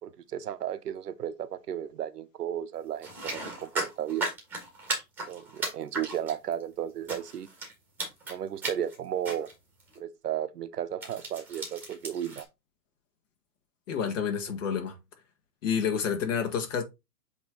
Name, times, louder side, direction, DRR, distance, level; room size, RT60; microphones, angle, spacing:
voice 1, 0.0-4.3 5.3-7.5 8.3-9.5 10.0-12.5, right 10 dB, 75° right, 0.9 m, -34 dB
sound 1, 3.0-6.6 7.1-7.7 8.0-8.3 8.6-9.0 9.2-9.5 9.8-10.0 11.0-12.4, right 2 dB, 5° right, 1.3 m, -35 dB
voice 2, 13.9-15.0 15.6-16.8, left 7 dB, 50° left, 2.0 m, -29 dB
7.9 x 3.2 x 3.7 m
hypercardioid pair, 155°, 47 cm